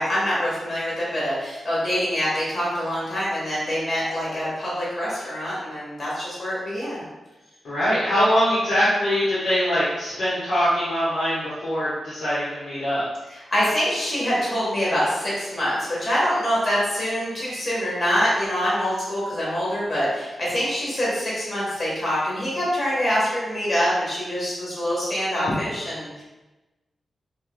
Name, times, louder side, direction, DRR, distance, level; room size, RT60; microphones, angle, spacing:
voice 1, 0.0-7.0 13.3-26.2, equal, 35° left, -7 dB, 1.3 m, -25 dB
voice 2, 7.6-13.0, equal, 80° left, -11 dB, 1.5 m, -22 dB
5.6 x 3.3 x 2.2 m, 1.1 s
wide cardioid pair, 165°, 0 cm